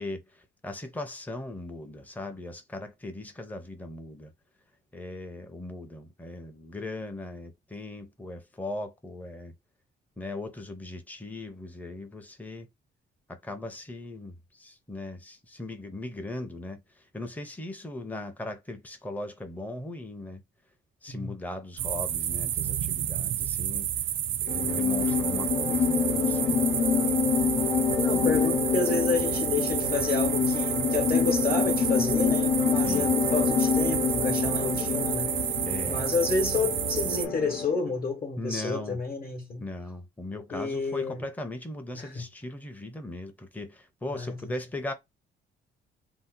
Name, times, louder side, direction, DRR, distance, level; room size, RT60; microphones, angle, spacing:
voice 1, 0.0-4.3 4.9-9.5 10.2-12.7 13.3-16.8 17.1-20.4 21.0-23.9 24.4-26.6 32.8-33.1 35.7-36.0 38.4-39.0 39.6-44.9, left 2 dB, 10° left, 0.6 m, -38 dB
sound 1, 21.8-37.3, right 11 dB, 70° right, 0.4 m, -30 dB
sound 2, 24.5-37.8, left 6 dB, 90° left, 0.7 m, -27 dB
voice 2, 27.9-35.3 35.9-39.6 40.5-41.2 41.9-42.3 44.1-44.5, left 4 dB, 45° left, 1.0 m, -30 dB
2.7 x 2.0 x 3.6 m
cardioid pair, 90°, 20 cm